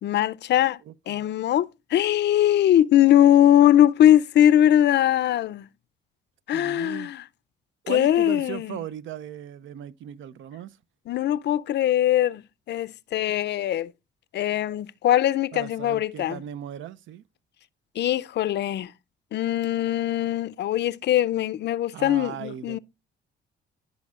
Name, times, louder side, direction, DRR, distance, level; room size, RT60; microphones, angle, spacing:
voice 1, 0.0-0.8 1.1-5.7 6.5-7.2 7.9-8.8 11.1-13.9 14.3-16.4 18.0-18.9 19.3-22.8, left 11 dB, 60° left, 0.5 m, -21 dB
voice 2, 0.9-1.2 6.5-7.1 7.8-10.8 15.5-17.2 21.9-22.8, right 10 dB, 75° right, 0.6 m, -37 dB
15.0 x 5.3 x 2.4 m
cardioid pair, 90°, 20 cm